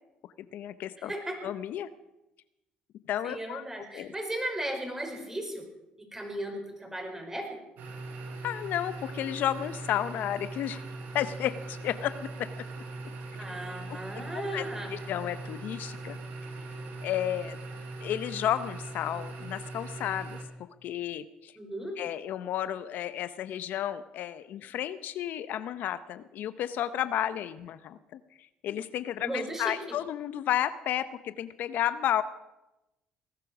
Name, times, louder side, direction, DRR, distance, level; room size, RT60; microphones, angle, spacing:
voice 1, 0.4-1.1 1.4-1.9 3.1-3.6 3.9-4.1 8.4-10.8 11.1-12.5 13.9-14.0 14.3-16.2 17.0-17.6 18.0-20.4 20.8-21.6 22.0-32.2, left 11 dB, 70° left, 13 dB, 0.7 m, -32 dB
voice 2, 1.1-1.4 3.2-5.7 6.0-7.6 13.3-14.9 21.6-22.0 29.2-29.8, right 1 dB, 15° right, 3 dB, 5.4 m, -36 dB
sound 1, 7.8-20.4, right 2 dB, 70° right, 3.2 m, -40 dB
19.5 x 11.5 x 6.1 m, 0.96 s
supercardioid pair, 75°, 3 cm